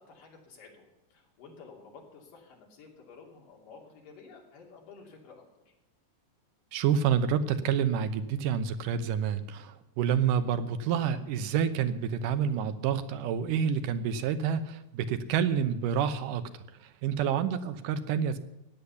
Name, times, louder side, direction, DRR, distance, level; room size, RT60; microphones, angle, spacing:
voice 1, 0.0-5.7 17.2-17.5, left 4 dB, 85° left, 0 dB, 4.6 m, -52 dB
voice 2, 6.7-18.4, right 8 dB, 80° right, 10 dB, 2.5 m, -28 dB
15.5 x 9.8 x 7.0 m, 0.95 s
omnidirectional pair, 3.7 m